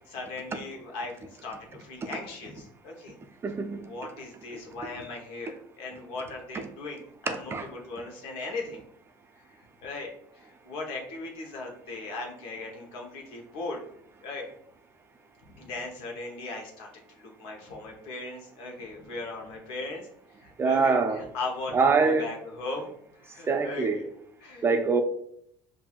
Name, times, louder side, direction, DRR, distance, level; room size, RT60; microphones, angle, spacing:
voice 1, 0.1-3.2 3.8-8.8 9.3-13.8 14.2-14.5 15.4-16.9 17.1-20.1 20.4-24.1 24.4-24.7, left 3 dB, 70° left, 1 dB, 1.0 m, -38 dB
voice 2, 3.4-3.8 7.3-7.7 20.6-21.2 21.7-22.3 23.5-24.0 24.6-25.0, right 4 dB, 25° right, 6 dB, 0.5 m, -24 dB
5.7 x 2.6 x 2.4 m, 0.71 s
supercardioid pair, 100°, 9 cm